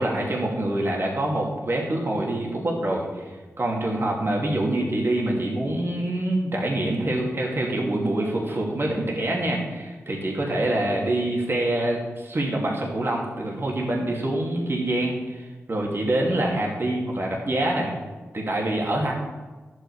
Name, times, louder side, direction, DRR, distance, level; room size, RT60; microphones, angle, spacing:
voice 1, 0.0-3.2 3.6-17.9 18.3-19.1, right 1 dB, 50° right, -2 dB, 2.5 m, -25 dB
11.0 x 8.3 x 4.8 m, 1.3 s
cardioid pair, 40°, 5 cm